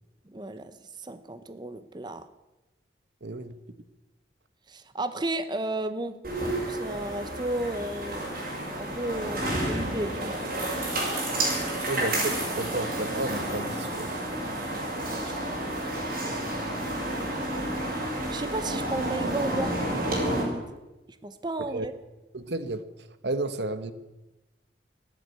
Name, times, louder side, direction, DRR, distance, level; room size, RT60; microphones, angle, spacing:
voice 1, 0.3-2.2 4.7-6.2 6.7-8.5 8.8-10.5 15.0-15.3 16.4-16.5 17.9-19.7 20.4-20.6 21.2-21.9, right 2 dB, 25° right, 10 dB, 0.7 m, -33 dB
voice 2, 3.2-3.5 11.9-14.2 21.7-21.9 22.3-22.8 23.2-23.9, right 2 dB, 75° right, 11 dB, 1.1 m, -32 dB
sound 1, 6.2-20.4, right 1 dB, 55° right, 6.9 m, -30 dB
15.0 x 10.0 x 9.5 m, 1.0 s
head